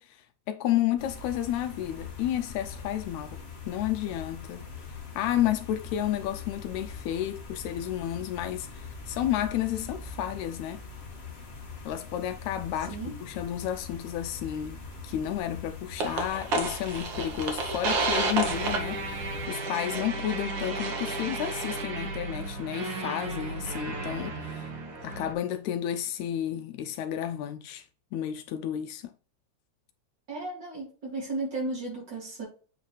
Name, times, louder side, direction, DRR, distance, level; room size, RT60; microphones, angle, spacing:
voice 1, 0.0-4.7 5.2-10.8 11.9-24.8 25.0-27.9 28.1-29.1, left 11 dB, 80° left, 1.8 m, -31 dB
sound 1, 1.0-19.5, left 5 dB, 40° left, 0.9 m, -42 dB
sound 2, 16.0-25.3, right 3 dB, 60° right, 1.2 m, -32 dB
voice 2, 30.3-32.5, right 2 dB, 35° right, 3.8 m, -34 dB
7.9 x 4.6 x 3.1 m
omnidirectional pair, 3.4 m